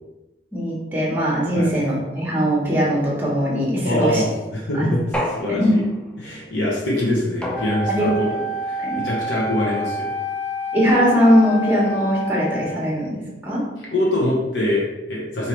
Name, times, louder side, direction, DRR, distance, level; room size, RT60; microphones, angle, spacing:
voice 1, 0.5-4.2 4.8-4.9 5.6-5.7 7.9-8.4 8.8-9.1 10.7-13.7, equal, 10° right, -4 dB, 0.9 m, -20 dB
voice 2, 3.8-5.0 5.3-5.8 6.2-8.3 8.6-10.2 13.9-15.5, left 1 dB, 65° left, -5 dB, 0.9 m, -24 dB
sound 1, 5.1-6.1 7.4-8.2, equal, 5° left, 0.3 m, -30 dB
Wind instrument woodwind instrument, 7.5-13.0, equal, 35° left, 1.4 m, -28 dB
4.6 x 2.8 x 3.0 m, 1.0 s
head